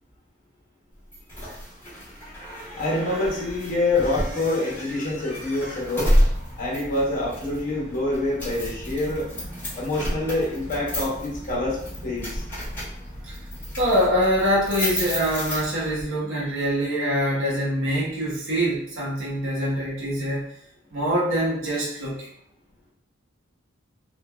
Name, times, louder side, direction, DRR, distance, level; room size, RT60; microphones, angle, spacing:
sound 1, 1.1-16.1, equal, 10° left, 1.3 m, -30 dB
voice 1, 2.7-6.1 6.6-9.3 9.7-12.4 16.4-16.5, left 2 dB, 45° left, -4 dB, 0.9 m, -26 dB
voice 2, 13.8-20.4 20.9-22.3, equal, 70° right, -6 dB, 0.8 m, -24 dB
3.2 x 2.2 x 2.2 m, 0.72 s
head